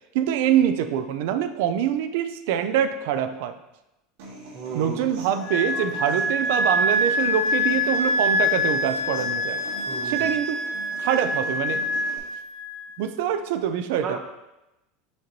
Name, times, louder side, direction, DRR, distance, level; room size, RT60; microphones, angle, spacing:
voice 1, 0.1-3.5 4.7-9.6 10.0-10.6 11.0-11.8 13.0-14.2, right 9 dB, 60° right, 9 dB, 0.4 m, -25 dB
Human voice / Acoustic guitar, 4.2-12.2, right 1 dB, 80° right, 1.8 m, -42 dB
voice 2, 4.5-5.0 9.9-10.3 14.0-14.2, right 5 dB, 30° right, 2 dB, 0.8 m, -33 dB
Wind instrument woodwind instrument, 5.4-12.9, left 1 dB, 65° left, 0.8 m, -25 dB
7.9 x 4.4 x 2.7 m, 0.94 s
supercardioid pair, 175°, 0 cm